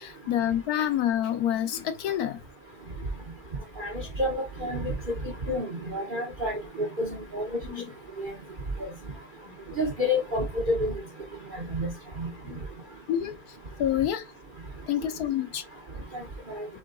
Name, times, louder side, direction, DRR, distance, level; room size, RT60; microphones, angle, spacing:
voice 1, 0.0-2.4 3.9-4.0 7.6-7.8 9.5-9.8 12.4-12.6 13.1-14.2 14.9-15.6, left 11 dB, 65° left, 1.1 m, -28 dB
voice 2, 4.2-4.9 5.5-7.4 8.2-8.3 9.8-10.9 11.7-11.9 12.2-12.3 16.5-16.7, left 1 dB, 40° right, 0.8 m, -29 dB
3.7 x 3.6 x 3.7 m
omnidirectional pair, 1.9 m